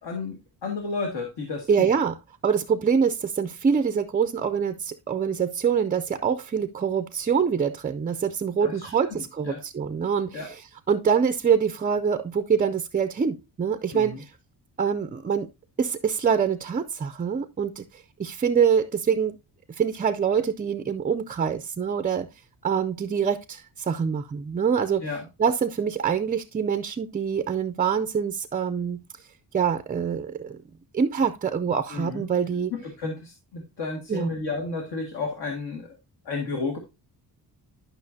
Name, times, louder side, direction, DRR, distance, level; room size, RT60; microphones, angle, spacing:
voice 1, 0.0-1.9 8.6-9.6 10.3-10.5 13.9-14.2 25.0-25.3 31.9-32.2 32.7-36.0 36.3-36.8, left 3 dB, 70° left, 1.9 m, -32 dB
voice 2, 1.7-2.1 2.4-10.6 10.9-14.3 14.8-15.5 15.8-19.4 19.8-22.3 22.6-25.0 25.4-29.0 29.5-30.6 30.9-32.7 34.1-34.3, right 7 dB, 20° right, 0.3 m, -25 dB
11.5 x 5.7 x 2.7 m
wide cardioid pair, 155°, 42 cm